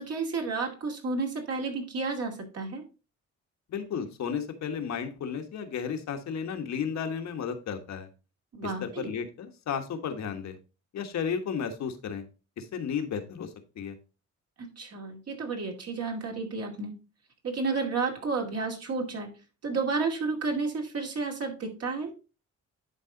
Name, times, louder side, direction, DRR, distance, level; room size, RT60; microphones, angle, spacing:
voice 1, 0.0-2.8 8.5-9.1 14.6-16.9 17.4-19.3 19.6-22.1, right 4 dB, 55° right, 1 dB, 2.4 m, -31 dB
voice 2, 3.7-8.1 8.6-10.6 10.9-12.2 12.6-14.0, left 7 dB, 65° left, 6 dB, 1.4 m, -33 dB
10.5 x 4.2 x 3.8 m, 0.33 s
cardioid pair, 90°, 30 cm